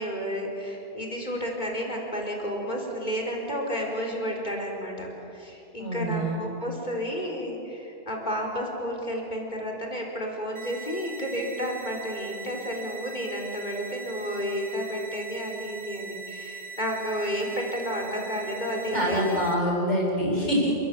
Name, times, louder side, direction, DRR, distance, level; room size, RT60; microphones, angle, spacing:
voice 1, 0.0-19.4, equal, 40° left, 0 dB, 4.7 m, -31 dB
voice 2, 5.8-6.5 18.9-20.8, equal, 90° left, -2 dB, 7.6 m, -25 dB
sound 1, 10.5-19.5, right 5 dB, 15° right, 2.6 m, -41 dB
29.0 x 21.5 x 8.6 m, 2.8 s
omnidirectional pair, 1.2 m